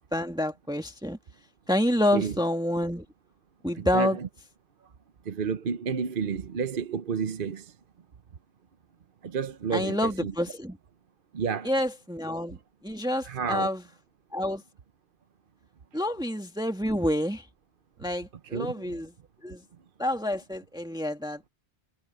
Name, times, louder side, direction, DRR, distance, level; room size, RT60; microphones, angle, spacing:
voice 1, 0.1-1.2 1.7-3.0 3.6-4.2 9.7-10.8 11.6-12.6 12.8-13.8 14.3-14.6 15.9-17.5 18.0-19.1 19.4-19.6 20.0-21.4, left 1 dB, 5° right, 1.6 m, -28 dB
voice 2, 3.8-4.3 5.2-7.7 9.2-10.3 11.3-11.7 13.2-13.7 18.5-18.7, right 6 dB, 55° right, 1.0 m, -30 dB
omnidirectional pair, 1.1 m